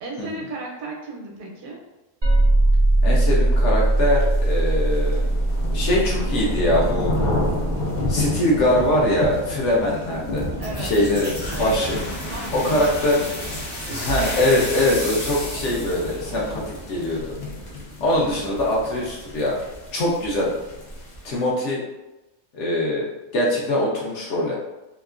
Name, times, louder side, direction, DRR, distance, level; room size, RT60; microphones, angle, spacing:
voice 1, 0.0-1.8 10.6-10.9 11.5-11.8 12.3-13.3 15.7-15.8, right 2 dB, 80° right, -1 dB, 1.1 m, -35 dB
sound 1, 2.2-7.7, right 1 dB, 45° right, 0.3 m, -20 dB
voice 2, 3.0-5.2 5.7-7.1 8.1-10.4 10.8-12.0 12.5-13.2 14.0-17.2 18.0-19.6 19.9-20.5 21.2-21.8 22.5-23.1 23.3-24.6, left 1 dB, 65° left, -3 dB, 0.8 m, -22 dB
sound 2, 3.8-21.4, left 1 dB, 85° left, 0.4 m, -31 dB
sound 3, 10.6-17.2, equal, 45° left, 1.1 m, -32 dB
2.9 x 2.4 x 2.4 m, 1.0 s
omnidirectional pair, 1.5 m